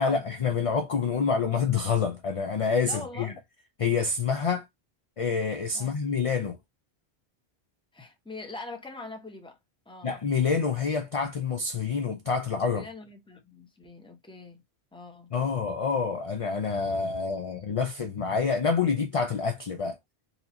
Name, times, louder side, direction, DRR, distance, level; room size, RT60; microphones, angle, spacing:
voice 1, 0.0-3.3 3.8-4.6 5.2-6.6 10.0-12.9 15.3-20.0, left 5 dB, 50° left, 0.4 m, -27 dB
voice 2, 2.8-3.4 5.7-6.0 7.9-9.6 9.9-10.2 12.7-14.6 14.9-15.3, left 2 dB, 5° left, 0.7 m, -43 dB
4.2 x 2.6 x 2.7 m
omnidirectional pair, 1.1 m